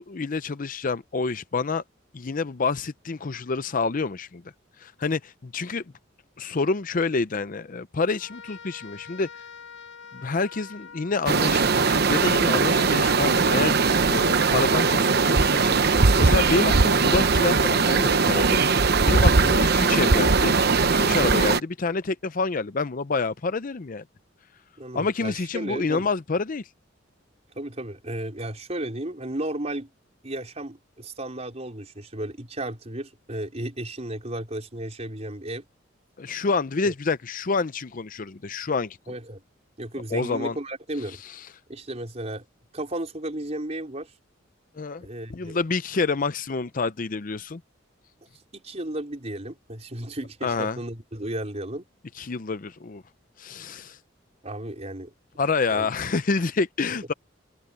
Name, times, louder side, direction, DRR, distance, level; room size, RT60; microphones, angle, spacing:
voice 1, 0.0-1.8 2.1-4.4 4.8-5.8 6.4-9.3 10.1-13.8 14.1-24.0 24.9-26.7 36.2-39.1 40.1-40.6 41.2-41.4 44.7-47.6 50.4-50.8 52.1-53.0 53.4-54.0 55.4-57.1, left 4 dB, 45° left, 0.6 m, -28 dB
Trumpet, 8.1-14.6, left 6 dB, 75° left, 7.2 m, -46 dB
sound 1, 11.3-21.6, right 4 dB, 55° right, 0.9 m, -20 dB
voice 2, 24.8-26.1 27.6-29.9 30.2-35.6 36.8-36.9 39.1-39.4 39.8-41.2 41.7-42.4 42.7-44.1 45.0-45.6 48.5-51.9 54.4-55.1 55.7-55.9, right 1 dB, 35° right, 4.5 m, -34 dB
head